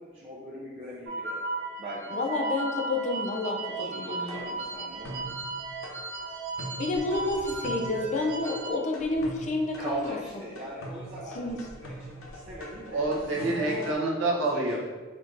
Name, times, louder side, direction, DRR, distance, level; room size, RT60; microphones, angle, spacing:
voice 1, 0.0-1.4 1.8-2.2 3.8-5.2 9.8-11.4 11.8-13.1 14.2-14.8, right 1 dB, 25° right, -8 dB, 0.6 m, -39 dB
sound 1, 1.1-8.7, right 3 dB, 90° right, 1.5 m, -35 dB
voice 2, 2.1-4.4 6.8-10.2 11.4-11.6, left 2 dB, 35° left, 1 dB, 0.4 m, -30 dB
sound 2, 4.3-13.9, equal, 80° left, 0.7 m, -42 dB
voice 3, 12.9-14.8, right 2 dB, 70° right, -2 dB, 1.0 m, -27 dB
4.3 x 2.6 x 4.5 m, 1.4 s
head